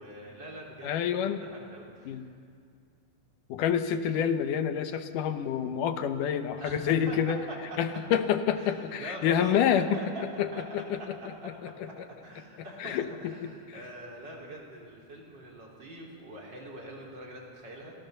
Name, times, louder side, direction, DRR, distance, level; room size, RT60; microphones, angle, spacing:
voice 1, 0.0-2.3 6.6-7.2 7.5-7.6 8.6-10.6 11.1-17.9, right 1 dB, 35° right, -3 dB, 4.7 m, -44 dB
voice 2, 0.8-1.5 2.1-2.2 3.5-7.4 7.8-10.0 10.4-10.5 10.7-11.2 11.4-11.9 12.8-13.8, left 8 dB, 85° left, 8 dB, 2.7 m, -28 dB
29.0 x 17.5 x 6.8 m, 2.2 s
omnidirectional pair, 3.6 m